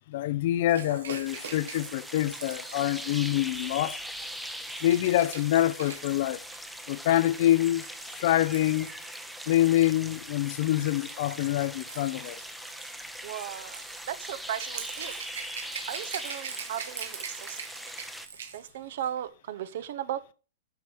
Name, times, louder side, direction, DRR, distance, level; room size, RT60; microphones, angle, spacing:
voice 1, 0.1-4.0 4.8-6.4 6.9-7.9 8.2-8.9 9.5-12.4, left 13 dB, 55° left, 0.5 m, -25 dB
Rattle / Rattle (instrument), 0.7-9.7 10.6-18.7 19.0-19.2, right 7 dB, 80° right, 1.7 m, -44 dB
sound 1, 1.2-18.3, equal, ahead, 0.7 m, -41 dB
voice 2, 13.2-15.2 15.8-17.6 18.4-20.3, right 10 dB, 60° right, 0.8 m, -36 dB
8.2 x 5.6 x 4.7 m
hypercardioid pair, 145°, 0 cm